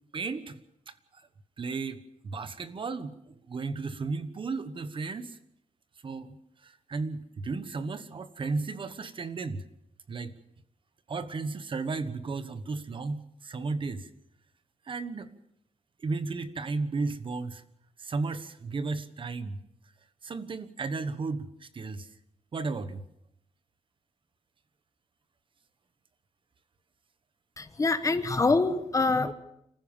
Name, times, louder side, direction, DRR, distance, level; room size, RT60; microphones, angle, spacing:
voice 1, 0.1-0.6 0.9-1.3 1.6-5.4 6.0-9.6 10.1-10.3 11.1-14.1 14.8-15.3 16.0-17.6 18.0-19.6 20.2-22.1 22.5-23.0, right 4 dB, 40° right, 12 dB, 1.3 m, -34 dB
voice 2, 27.6-29.3, left 3 dB, 25° left, 11 dB, 1.1 m, -25 dB
27.0 x 15.0 x 7.2 m, 0.76 s
wide cardioid pair, 170°, 13 cm